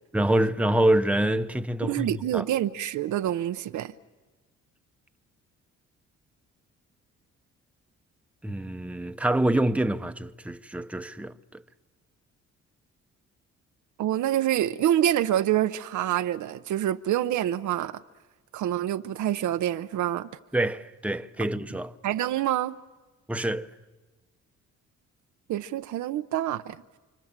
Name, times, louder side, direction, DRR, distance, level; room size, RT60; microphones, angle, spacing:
voice 1, 0.1-2.4 8.4-11.3 20.5-21.9 23.3-23.7, right 1 dB, 5° right, 1.0 m, -26 dB
voice 2, 1.8-3.9 14.0-18.0 18.5-20.3 22.0-22.8 25.5-26.8, right 12 dB, 75° right, 0.8 m, -26 dB
28.5 x 25.5 x 7.4 m
cardioid pair, 90°, 30 cm